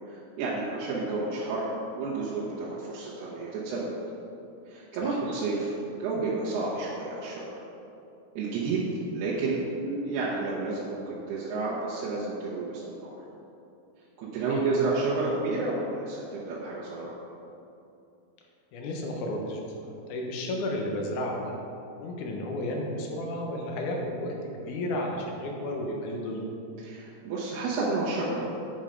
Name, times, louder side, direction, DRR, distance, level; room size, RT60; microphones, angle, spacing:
voice 1, 0.1-3.9 4.7-7.6 8.3-8.9 9.1-13.2 14.2-17.1 26.8-28.4, right 3 dB, 85° right, -8 dB, 3.2 m, -31 dB
voice 2, 18.7-19.6 20.1-21.5 22.0-26.4, left 1 dB, 70° left, 0 dB, 2.1 m, -32 dB
8.9 x 5.5 x 5.1 m, 2.8 s
omnidirectional pair, 4.5 m